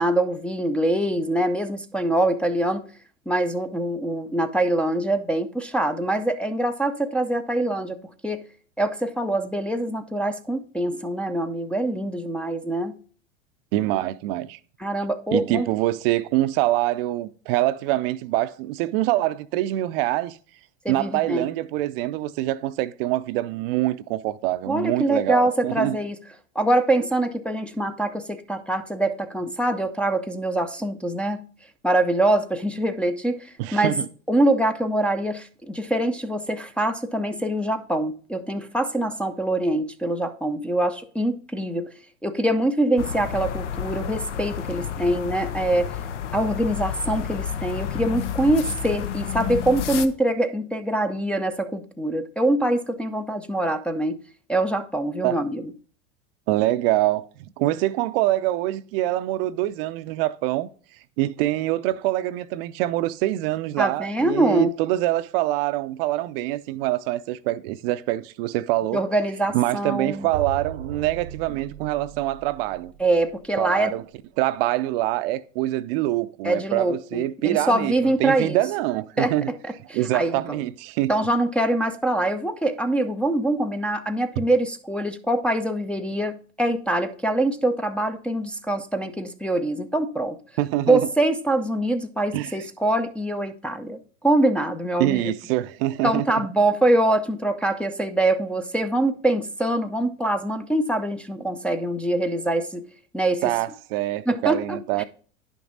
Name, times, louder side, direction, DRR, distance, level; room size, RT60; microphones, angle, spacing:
voice 1, 0.0-2.8 3.3-8.0 8.2-8.4 8.8-12.9 14.8-15.7 20.8-21.5 24.7-26.2 26.6-31.4 31.8-33.9 34.3-41.9 42.2-45.9 46.3-54.2 54.5-55.7 63.8-64.7 68.9-70.3 73.0-73.9 76.4-78.6 79.2-80.6 81.1-90.4 90.9-95.3 96.0-102.9 103.1-103.4 104.3-105.0, right 1 dB, 5° left, 0.5 m, -24 dB
voice 2, 13.7-14.6 15.3-20.4 20.9-26.0 33.6-34.1 55.2-55.4 56.5-57.3 57.6-60.7 61.2-69.0 69.5-72.9 73.6-74.0 74.4-79.5 79.9-81.1 90.6-91.0 92.3-92.5 95.0-96.2 103.4-105.0, right 16 dB, 50° right, 0.5 m, -25 dB
sound 1, 43.0-50.1, left 8 dB, 75° left, 0.9 m, -30 dB
sound 2, 70.0-74.0, right 7 dB, 80° right, 0.9 m, -38 dB
10.0 x 6.0 x 4.0 m
hypercardioid pair, 95°, 37 cm